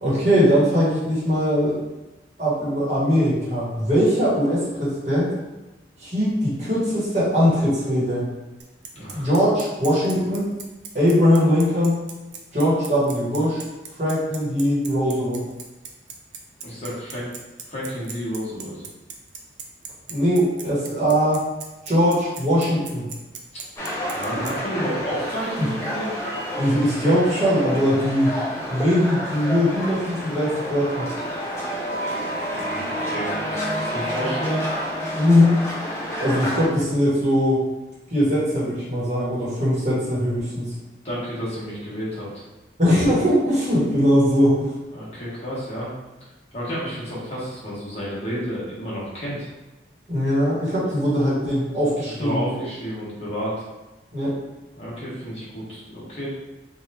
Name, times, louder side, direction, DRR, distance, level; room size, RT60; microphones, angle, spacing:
voice 1, 0.0-1.8 2.4-5.3 6.0-8.3 9.1-10.5 10.9-12.0 12.5-13.6 14.0-15.4 20.1-21.4 21.9-23.0 26.6-28.4 28.7-31.1 35.1-35.5 36.2-37.6 38.1-40.7 42.8-44.7 50.1-52.6 54.1-54.3, equal, 40° right, -8 dB, 1.2 m, -20 dB
Bicycle, 8.6-24.5, right 6 dB, 70° right, 0.4 m, -38 dB
voice 2, 8.9-9.3 16.6-17.3 17.7-18.8 23.5-23.6 24.1-26.1 32.5-34.6 41.0-42.3 44.9-45.9 46.5-49.5 52.2-53.6 54.8-56.3, equal, 35° left, -7 dB, 1.1 m, -31 dB
sound 1, 23.8-36.7, equal, 15° left, 0.6 m, -29 dB
2.9 x 2.4 x 3.3 m, 1.1 s
head